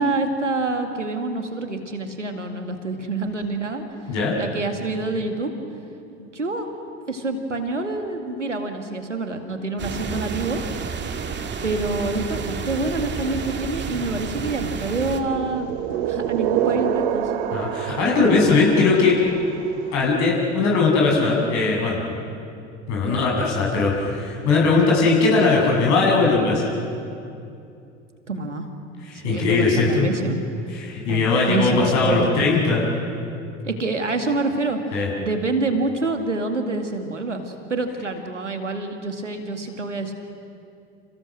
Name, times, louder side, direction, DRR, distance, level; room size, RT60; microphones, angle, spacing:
voice 1, 0.0-3.8 4.4-5.5 6.1-6.7 7.1-10.6 11.6-15.7 16.0-17.3 23.0-23.3 28.3-28.7 29.1-30.4 31.1-32.3 33.6-34.8 35.2-40.1, right 2 dB, 85° right, 5 dB, 2.3 m, -27 dB
sound 1, 9.8-15.2, right 6 dB, 30° right, 2.3 m, -30 dB
sound 2, 15.0-20.0, right 10 dB, 60° right, 1.4 m, -27 dB
voice 2, 17.5-19.2 19.9-22.0 22.9-26.7 29.1-30.1 30.7-32.8 34.9-35.1, left 3 dB, 50° left, -2 dB, 7.4 m, -19 dB
29.5 x 28.5 x 6.4 m, 2.5 s
figure-of-eight pair, 70°, 36 cm